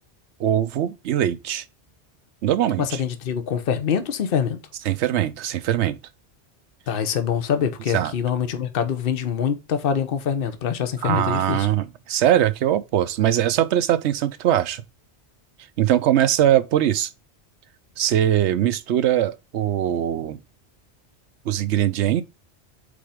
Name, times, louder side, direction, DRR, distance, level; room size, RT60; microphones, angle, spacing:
voice 1, 0.4-1.6 2.4-3.0 4.9-6.0 7.9-8.1 11.0-14.8 15.8-17.1 18.0-20.4 21.5-22.2, right 11 dB, 80° right, 0.9 m, -21 dB
voice 2, 2.8-4.6 6.9-11.7, left 8 dB, 55° left, 1.0 m, -24 dB
5.2 x 4.3 x 4.9 m
omnidirectional pair, 1.2 m